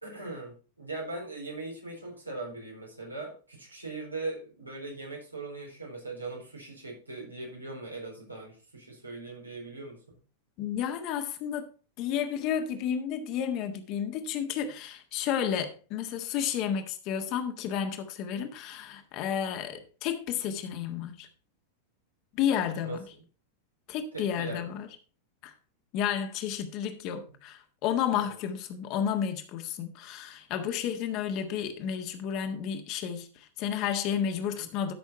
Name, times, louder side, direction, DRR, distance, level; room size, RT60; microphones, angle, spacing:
voice 1, 0.0-10.0 22.8-23.0 24.1-24.6 28.2-28.4 34.5-34.7, right 2 dB, 85° right, 4.2 m, -40 dB
voice 2, 10.6-11.7 12.0-21.3 22.3-23.0 23.9-24.9 25.4-25.5 25.9-34.9, left 8 dB, 40° left, 1.6 m, -31 dB
12.5 x 6.3 x 4.2 m
figure-of-eight pair, 90°, 0 cm